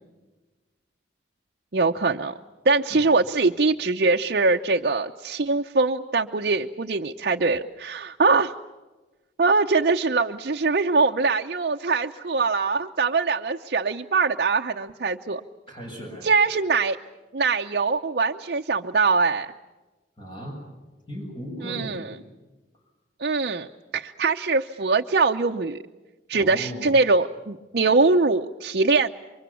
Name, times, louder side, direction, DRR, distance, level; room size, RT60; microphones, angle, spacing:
voice 1, 1.7-2.3 2.6-8.5 9.4-15.4 16.2-17.0 17.3-19.5 21.6-22.1 23.2-23.7 23.9-25.8 26.3-29.1, right 4 dB, 60° right, 2 dB, 0.7 m, -22 dB
voice 2, 15.7-16.3 20.2-20.6 21.1-22.2 26.3-26.9, equal, 30° left, 0 dB, 7.4 m, -37 dB
28.5 x 24.5 x 7.1 m, 1.2 s
head